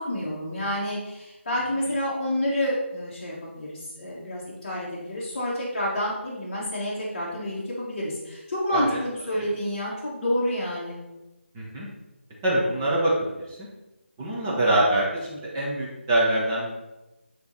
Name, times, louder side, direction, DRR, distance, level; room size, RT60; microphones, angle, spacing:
voice 1, 0.0-11.0, equal, 35° left, -8 dB, 1.7 m, -29 dB
voice 2, 11.5-11.9 12.4-13.1 14.2-16.8, right 1 dB, 15° right, -6 dB, 0.9 m, -24 dB
9.5 x 3.2 x 4.1 m, 1.0 s
figure-of-eight pair, 170°, 7 cm